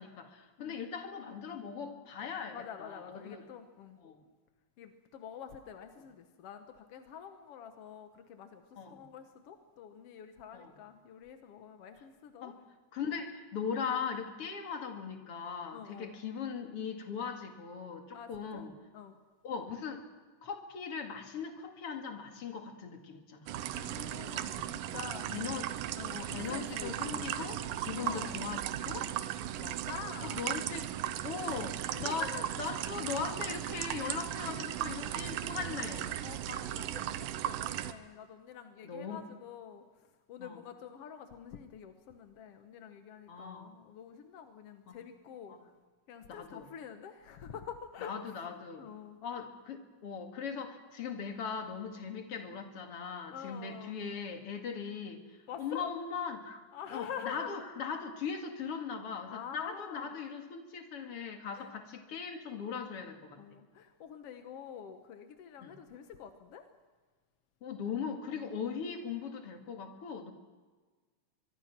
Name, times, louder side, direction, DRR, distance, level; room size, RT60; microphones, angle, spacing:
voice 1, 0.0-3.4 4.0-4.2 8.8-9.0 10.5-10.7 12.4-12.6 12.9-18.7 19.4-20.0 20.4-23.8 24.3-24.5 25.3-25.8 26.1-29.1 29.6-29.8 30.2-30.9 31.2-32.3 32.6-36.1 38.8-39.2 40.4-40.6 43.3-43.7 44.9-45.0 45.5-45.6 46.3-46.7 48.0-48.8 49.2-55.2 55.6-56.6 56.9-63.6 65.6-65.7 67.6-70.3, left 6 dB, 45° left, 5 dB, 2.6 m, -39 dB
voice 2, 2.5-4.0 4.8-8.6 8.9-12.5 15.7-16.1 18.1-18.6 18.9-19.1 23.7-25.3 26.0-27.3 28.0-28.4 29.6-30.5 31.8-32.5 36.2-39.9 40.3-45.6 46.1-48.1 48.8-49.2 53.3-53.9 55.5-55.9 56.7-57.5 59.3-60.1 61.5-61.7 63.4-66.6 68.3-68.5, left 8 dB, 65° left, 7 dB, 1.5 m, -46 dB
sound 1, 23.5-37.9, right 12 dB, 75° right, 2.5 m, -37 dB
23.5 x 23.5 x 6.0 m, 1.4 s
omnidirectional pair, 4.2 m